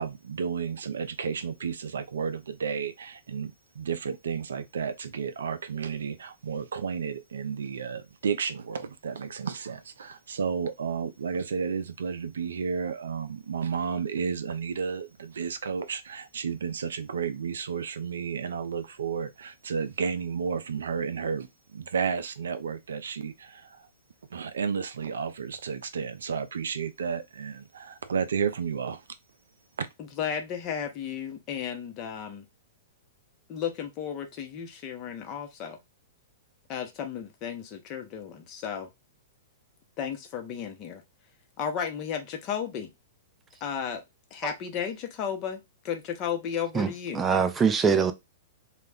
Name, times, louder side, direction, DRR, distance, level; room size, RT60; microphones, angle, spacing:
voice 1, 0.0-23.9 24.3-29.0 29.8-29.9, right 6 dB, 80° right, 0.4 m, -32 dB
voice 2, 30.0-32.4 33.5-35.8 36.7-38.9 40.0-41.0 41.6-42.9 43.6-44.0 44.3-47.2, left 8 dB, 35° left, 0.7 m, -34 dB
voice 3, 47.1-48.1, right 6 dB, 15° right, 0.4 m, -23 dB
2.3 x 2.1 x 3.4 m
hypercardioid pair, 125°, 0 cm